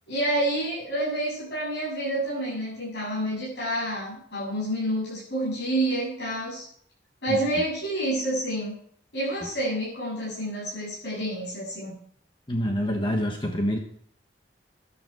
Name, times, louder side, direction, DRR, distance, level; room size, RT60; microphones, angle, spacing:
voice 1, 0.1-6.6 7.2-8.8 9.1-11.9, right 1 dB, 75° left, -8 dB, 7.8 m, -28 dB
voice 2, 12.5-13.8, equal, 25° left, 2 dB, 1.3 m, -26 dB
14.0 x 11.5 x 4.8 m, 0.62 s
head